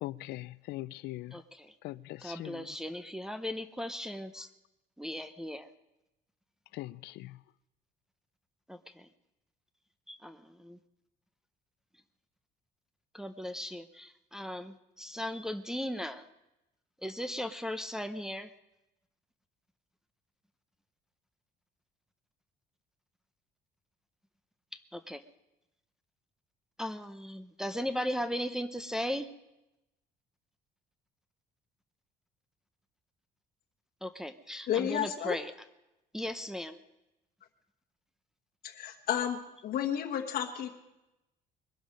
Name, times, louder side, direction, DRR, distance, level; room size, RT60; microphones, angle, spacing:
voice 1, 0.0-1.4 1.8-2.7 6.7-7.4, left 17 dB, 80° left, 0.5 m, -41 dB
voice 2, 1.3-1.7 2.2-4.5 5.0-5.7 8.7-9.1 10.1-10.8 13.1-16.3 17.0-18.5 24.7-25.2 26.8-29.3 34.0-35.5 36.1-36.8, equal, 5° right, 0.7 m, -37 dB
voice 3, 34.7-35.4 38.6-40.7, left 10 dB, 65° left, 1.2 m, -32 dB
21.5 x 12.5 x 5.2 m
cardioid pair, 110°, 17 cm